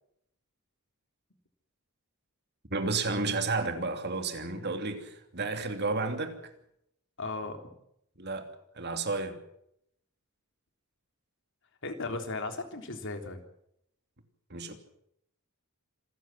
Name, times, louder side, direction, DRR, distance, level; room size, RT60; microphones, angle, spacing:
voice 1, 2.7-6.4 8.2-9.4 14.5-14.7, right 3 dB, 50° right, 2.8 m, -32 dB
voice 2, 7.2-7.6 11.8-13.4, left 3 dB, 60° left, 3.5 m, -36 dB
27.0 x 14.0 x 7.4 m
head